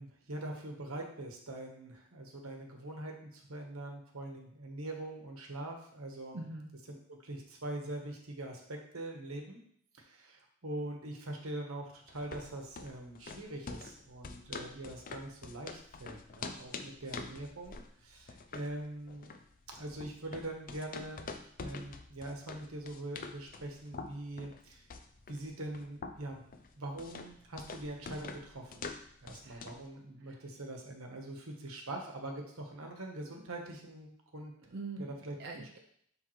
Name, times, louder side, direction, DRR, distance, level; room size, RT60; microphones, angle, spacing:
voice 1, 0.0-6.4 6.9-9.6 9.9-19.3 19.7-21.3 21.6-24.9 25.3-26.4 26.8-28.9 29.2-34.5 35.0-35.3, right 1 dB, 85° right, 2 dB, 1.3 m, -43 dB
voice 2, 6.3-6.7 29.4-29.6 30.2-30.4 34.7-35.8, right 3 dB, 50° right, 0 dB, 0.6 m, -44 dB
sound 1, 12.1-29.9, left 4 dB, 40° left, 0.5 m, -46 dB
10.5 x 3.6 x 3.2 m, 0.66 s
head